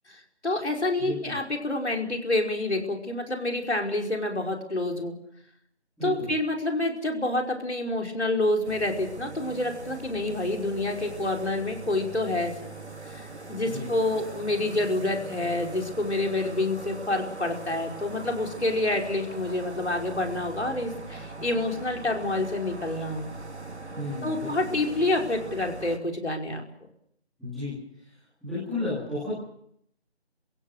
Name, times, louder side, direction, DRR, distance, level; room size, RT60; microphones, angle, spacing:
voice 1, 0.1-5.1 6.0-12.5 13.1-23.3 24.2-26.6, left 2 dB, 85° left, 2 dB, 5.4 m, -28 dB
voice 2, 1.0-1.4 6.0-6.3 13.6-13.9 23.9-24.8 27.4-28.1 28.4-29.3, left 2 dB, ahead, -19 dB, 2.3 m, -33 dB
sound 1, 8.6-26.0, right 3 dB, 85° right, 3.4 m, -41 dB
29.5 x 16.0 x 7.8 m, 0.71 s
figure-of-eight pair, 175°, 33 cm